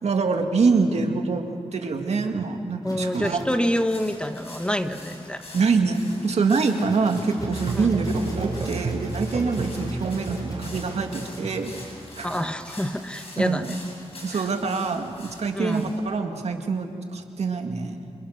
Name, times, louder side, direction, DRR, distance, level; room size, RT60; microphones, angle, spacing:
voice 1, 0.0-3.5 5.5-12.3 13.4-13.7 14.2-18.1, right 4 dB, 85° right, 4 dB, 2.2 m, -25 dB
sound 1, 2.8-13.3, left 1 dB, 35° left, 5.5 m, -50 dB
voice 2, 2.8-5.4 7.8-7.9 12.2-13.8 14.3-14.4 15.5-15.9, equal, 10° left, 8 dB, 1.1 m, -27 dB
sound 2, 3.7-16.0, left 2 dB, 65° left, 7.2 m, -45 dB
Musical instrument, 7.4-12.2, right 3 dB, 65° right, 4.1 m, -32 dB
28.0 x 26.5 x 6.6 m, 2.3 s
wide cardioid pair, 120°, 11 cm